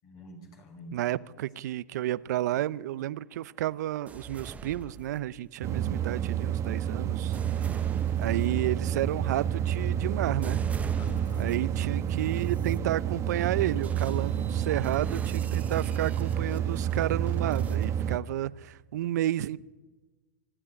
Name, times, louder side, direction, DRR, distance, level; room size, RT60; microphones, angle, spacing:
voice 1, 0.0-1.0 10.9-11.5 14.0-14.6 15.6-15.7 16.0-16.2, left 2 dB, 40° left, 6.3 m, -47 dB
voice 2, 0.9-7.4 8.2-10.7 11.4-19.6, right 13 dB, 70° right, 0.7 m, -31 dB
sound 1, 4.1-5.6 6.3-11.8 12.4-12.8 13.8-17.8, right 5 dB, 15° right, 0.9 m, -44 dB
sound 2, 5.6-18.2, right 9 dB, 30° right, 1.4 m, -29 dB
24.5 x 12.5 x 10.0 m
hypercardioid pair, 120°, 10 cm